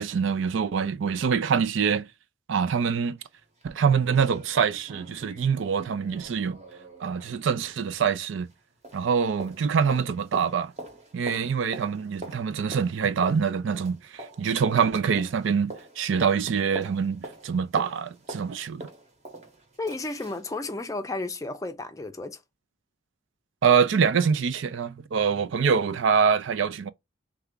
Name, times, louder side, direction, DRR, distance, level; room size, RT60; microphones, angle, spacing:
voice 1, 0.0-2.1 2.5-3.2 3.6-6.6 7.0-8.5 8.9-10.7 11.1-18.9 23.6-26.9, right 6 dB, 80° right, 0.4 m, -25 dB
sound 1, 3.2-3.3 3.6-3.7 4.0-8.6 8.8-20.5 20.8-20.9, right 1 dB, 35° right, 1.0 m, -44 dB
voice 2, 19.8-22.4, left 2 dB, 15° left, 0.4 m, -33 dB
3.3 x 2.3 x 3.7 m
head